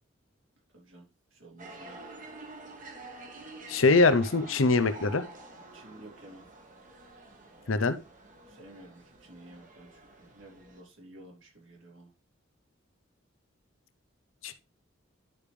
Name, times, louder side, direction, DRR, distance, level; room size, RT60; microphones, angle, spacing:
voice 1, 0.7-1.0 1.3-2.0 5.7-6.4 8.5-12.1, right 1 dB, 75° right, -2 dB, 3.4 m, -52 dB
sound 1, 1.6-10.8, right 2 dB, 40° right, 1.5 m, -48 dB
voice 2, 3.7-5.2 7.7-8.0 14.4-14.5, left 3 dB, 90° left, 12 dB, 0.8 m, -23 dB
10.5 x 5.1 x 3.3 m, 0.29 s
head